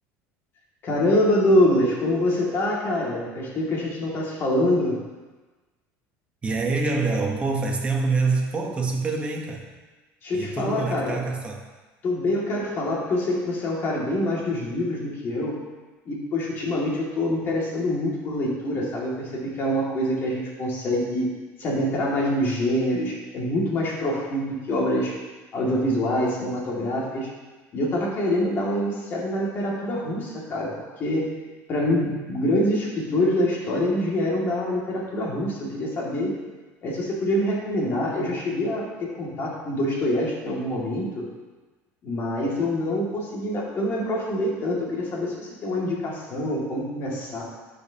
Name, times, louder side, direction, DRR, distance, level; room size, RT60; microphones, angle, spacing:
voice 1, 0.8-5.0 10.2-11.2 12.0-15.6 16.1-21.3 21.6-25.1 25.5-27.3 27.7-30.7 31.0-31.3 31.7-36.3 36.8-41.2 42.0-47.4, left 1 dB, 35° left, -4 dB, 2.1 m, -25 dB
voice 2, 6.4-9.7 10.3-11.6, right 3 dB, 20° right, 1 dB, 1.0 m, -26 dB
12.0 x 5.2 x 2.8 m, 1.2 s
cardioid pair, 145°, 6 cm